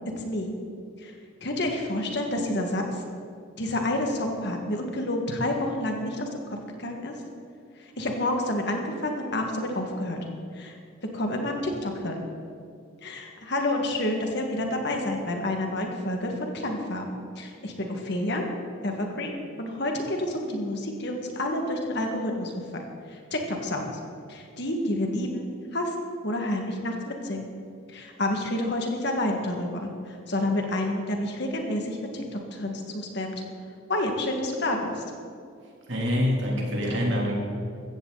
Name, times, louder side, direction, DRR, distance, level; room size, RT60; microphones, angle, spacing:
voice 1, 0.2-0.5 1.0-1.1 1.4-3.0 3.6-7.1 7.8-10.2 10.5-10.8 11.1-12.2 13.0-17.1 17.4-18.4 18.8-19.3 19.6-22.5 23.1-23.9 24.3-27.5 27.9-33.3 33.9-35.0, left 1 dB, 55° left, 2 dB, 2.0 m, -29 dB
voice 2, 35.9-37.4, left 1 dB, 60° right, -2 dB, 3.4 m, -25 dB
16.0 x 14.5 x 4.2 m, 2.4 s
head